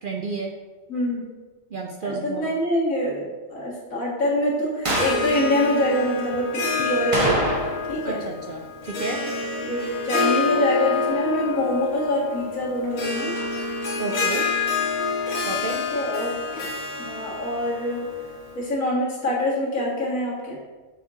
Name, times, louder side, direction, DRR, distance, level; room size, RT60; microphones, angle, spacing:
voice 1, 0.0-0.5 1.7-2.5 8.0-9.2 14.0-14.5 15.5-15.8, right 3 dB, 60° right, 2 dB, 0.6 m, -31 dB
voice 2, 0.9-1.3 2.0-7.5 7.9-8.2 9.6-13.3 15.7-16.4 17.0-18.1 18.6-20.6, left 1 dB, 85° left, -5 dB, 2.1 m, -25 dB
Harp, 4.8-18.6, left 4 dB, 55° left, 1.5 m, -28 dB
sound 1, 4.9-5.3 7.1-8.0 8.2-8.3 13.4-13.5, right 1 dB, 25° right, 0.9 m, -24 dB
7.0 x 4.5 x 3.6 m, 1.3 s
omnidirectional pair, 1.4 m